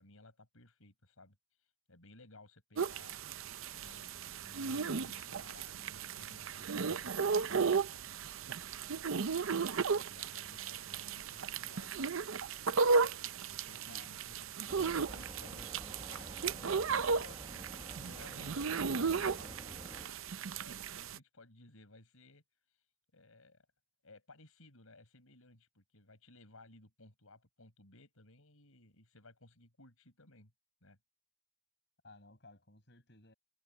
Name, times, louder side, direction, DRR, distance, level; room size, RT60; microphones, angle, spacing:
voice 1, 0.0-1.4 1.9-3.2 3.7-8.0 9.2-12.1 13.4-22.4 23.1-23.7 24.0-30.5 30.8-31.0, left 2 dB, 85° left, 5.1 m, -59 dB
sound 1, 2.8-21.2, right 5 dB, 70° right, 0.6 m, -35 dB
voice 2, 13.7-14.1 32.0-33.3, left 2 dB, 55° left, 6.9 m, -58 dB
sound 2, 14.7-20.1, right 1 dB, 20° right, 1.7 m, -50 dB
head